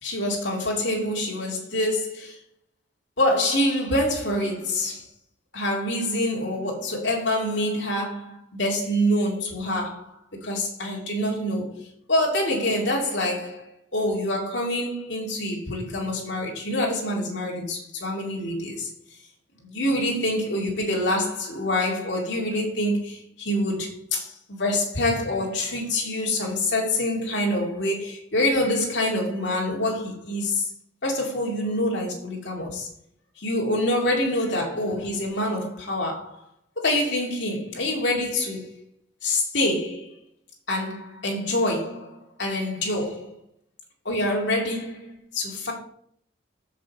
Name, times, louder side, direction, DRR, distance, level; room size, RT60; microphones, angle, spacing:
voice 1, 0.0-2.4 3.2-5.1 5.5-18.9 19.6-30.7 31.0-32.9 33.4-36.4 36.8-38.7 39.2-40.1 40.7-43.4 44.0-45.7, left 1 dB, 65° left, 2.5 m, -26 dB
7.5 x 5.3 x 7.1 m
head